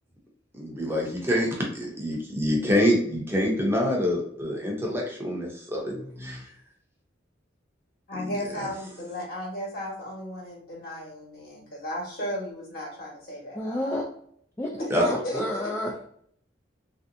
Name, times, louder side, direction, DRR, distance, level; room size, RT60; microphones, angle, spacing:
voice 1, 0.5-5.9 6.2-6.5 8.1-8.3 14.9-15.0, equal, 15° right, -1 dB, 0.7 m, -26 dB
voice 2, 5.9-6.4 13.5-14.1 14.6-16.1, left 1 dB, 15° left, -3 dB, 0.4 m, -31 dB
voice 3, 8.1-14.0 14.8-15.7, equal, 55° left, -4 dB, 1.4 m, -35 dB
3.2 x 2.7 x 2.6 m, 0.65 s
head